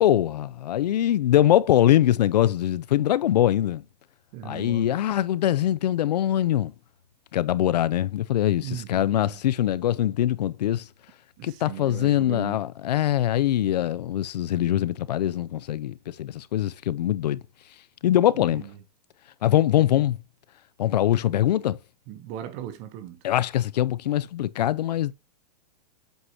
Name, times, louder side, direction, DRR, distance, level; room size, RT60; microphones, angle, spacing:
voice 1, 0.0-3.8 4.4-6.7 7.3-10.9 11.4-17.4 18.0-18.6 19.4-20.2 20.8-21.8 23.2-25.1, left 12 dB, 85° left, 0.5 m, -23 dB
voice 2, 4.3-4.9 8.6-9.4 11.4-12.6 18.3-18.8 22.1-23.2, right 11 dB, 30° right, 0.8 m, -38 dB
7.9 x 4.8 x 2.7 m
supercardioid pair, 160°, 21 cm